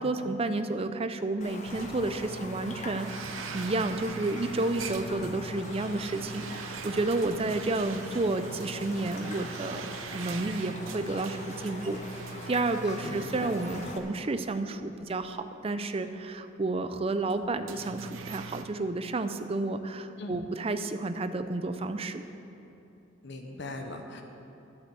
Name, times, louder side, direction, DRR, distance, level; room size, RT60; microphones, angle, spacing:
voice 1, 0.0-22.2, right 2 dB, 30° right, 10 dB, 0.5 m, -31 dB
Raindrop, 1.4-14.0, left 2 dB, 35° left, 1.0 m, -44 dB
sound 1, 1.6-14.7 15.1-15.3 16.1-16.2 17.2-18.6, right 5 dB, 90° right, 0.7 m, -42 dB
voice 2, 13.0-13.5 20.2-20.4 23.2-24.2, left 2 dB, 60° left, 4 dB, 0.9 m, -40 dB
12.0 x 8.0 x 6.8 m, 2.9 s
head